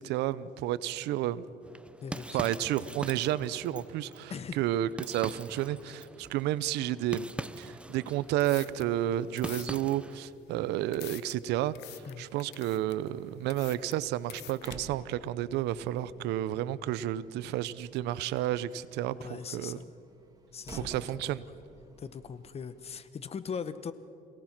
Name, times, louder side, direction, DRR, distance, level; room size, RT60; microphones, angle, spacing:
voice 1, 0.0-1.5 2.3-7.3 7.6-19.8 20.7-21.4, right 13 dB, 85° right, 17 dB, 0.7 m, -31 dB
voice 2, 1.0-1.3 2.0-2.5 4.3-4.6 12.0-12.3 19.1-19.9 20.5-20.9 21.2-21.4 22.0-23.9, left 6 dB, 35° left, 13 dB, 1.0 m, -40 dB
sound 1, 1.6-10.3, right 1 dB, 5° right, 0.6 m, -43 dB
sound 2, 8.2-14.7, left 16 dB, 85° left, 0.8 m, -48 dB
Slam, 13.6-23.0, right 2 dB, 20° right, 2.6 m, -53 dB
27.0 x 18.0 x 6.0 m, 2.6 s
cardioid pair, 110°, 17 cm